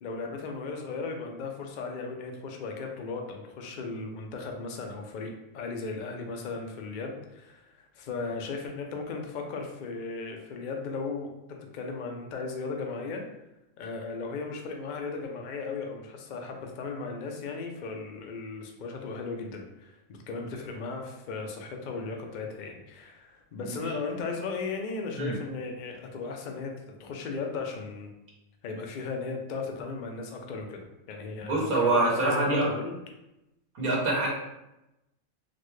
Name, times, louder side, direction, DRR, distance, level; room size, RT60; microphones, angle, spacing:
voice 1, 0.0-13.2 13.8-26.7 27.0-28.1 28.6-32.9, left 4 dB, 80° left, 2 dB, 0.4 m, -36 dB
voice 2, 31.5-32.7 33.8-34.3, right 2 dB, 85° right, -4 dB, 1.3 m, -25 dB
4.1 x 2.1 x 3.1 m, 0.92 s
omnidirectional pair, 1.5 m